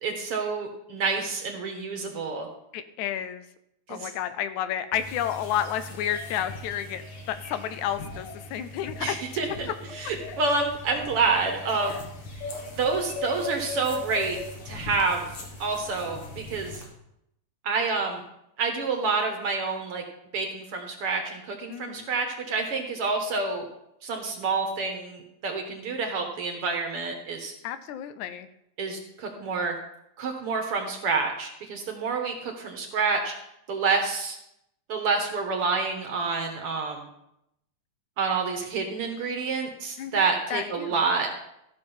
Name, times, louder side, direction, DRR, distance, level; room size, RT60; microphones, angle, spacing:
voice 1, 0.0-2.5 3.9-4.1 9.0-9.7 9.9-12.0 12.7-14.4 14.7-15.3 15.6-16.8 17.6-18.2 18.6-20.0 20.3-23.7 24.0-27.5 28.8-29.8 30.2-33.3 33.7-34.4 34.9-37.1 38.2-41.3, right 4 dB, 60° right, 3 dB, 1.9 m, -28 dB
voice 2, 2.7-3.5 3.9-7.0 7.3-9.2 11.9-12.0 21.7-22.1 27.6-28.5 40.0-41.0, left 10 dB, 80° left, 11 dB, 2.0 m, -31 dB
sound 1, 4.9-16.8, left 3 dB, 50° left, 2.3 m, -39 dB
14.0 x 6.3 x 5.5 m, 0.81 s
omnidirectional pair, 3.4 m